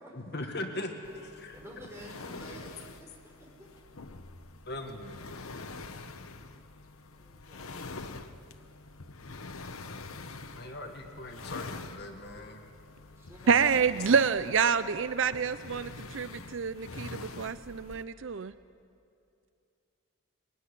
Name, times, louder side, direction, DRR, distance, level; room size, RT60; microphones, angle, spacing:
voice 1, 0.1-1.6 4.7-5.2 10.5-12.7, left 1 dB, 50° left, 4 dB, 1.8 m, -40 dB
sound 1, 1.0-18.0, left 3 dB, 85° left, 1.1 m, -45 dB
voice 2, 1.5-3.7 7.1-7.9 10.5-11.2 13.2-13.7 14.0-15.8, right 1 dB, 10° right, -2 dB, 5.1 m, -50 dB
voice 3, 13.5-18.5, right 6 dB, 65° right, 14 dB, 0.5 m, -27 dB
21.5 x 19.5 x 10.0 m, 2.5 s
head